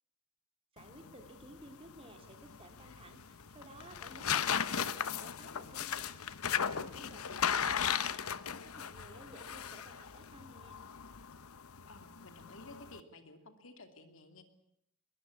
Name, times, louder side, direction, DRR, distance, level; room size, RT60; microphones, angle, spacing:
voice 1, 0.7-8.2 8.5-10.8, right 1 dB, 25° right, 6 dB, 2.8 m, -55 dB
sound 1, 0.8-13.0, left 8 dB, 80° left, 0.9 m, -37 dB
voice 2, 6.9-8.2 11.9-14.4, left 2 dB, 65° left, 7 dB, 2.8 m, -55 dB
22.0 x 21.5 x 8.5 m, 0.74 s
head